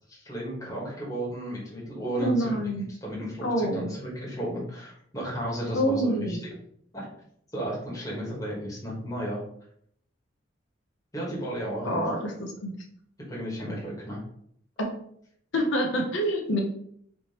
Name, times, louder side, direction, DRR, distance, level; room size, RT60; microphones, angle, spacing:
voice 1, 0.1-2.6 3.0-6.4 6.9-7.1 7.5-9.4 11.1-12.1 13.3-14.2, equal, 15° left, -5 dB, 1.4 m, -33 dB
voice 2, 2.2-2.9 3.4-3.9 5.7-6.4 11.8-12.7 14.8-14.9 15.5-16.6, equal, 80° left, 1 dB, 0.7 m, -26 dB
3.4 x 2.9 x 4.2 m, 0.67 s
head